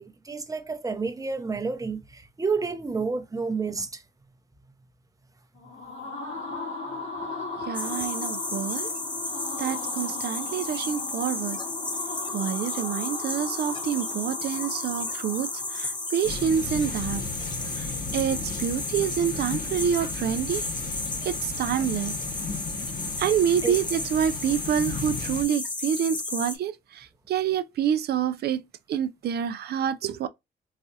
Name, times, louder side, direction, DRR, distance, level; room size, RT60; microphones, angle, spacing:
voice 1, 0.0-4.0 9.6-9.8 23.6-23.7, right 4 dB, 15° right, 0.7 m, -30 dB
sound 1, 5.5-16.4, left 3 dB, 80° left, 2.1 m, -37 dB
voice 2, 7.6-8.9 9.6-11.6 12.3-17.2 17.8-20.7 21.2-22.1 23.2-28.6 28.9-30.3, right 9 dB, 55° right, 0.4 m, -27 dB
sound 2, 7.7-26.6, left 2 dB, 25° left, 0.8 m, -33 dB
sound 3, 16.2-25.4, left 3 dB, 50° left, 1.1 m, -36 dB
4.1 x 2.4 x 2.7 m
cardioid pair, 90°, 20 cm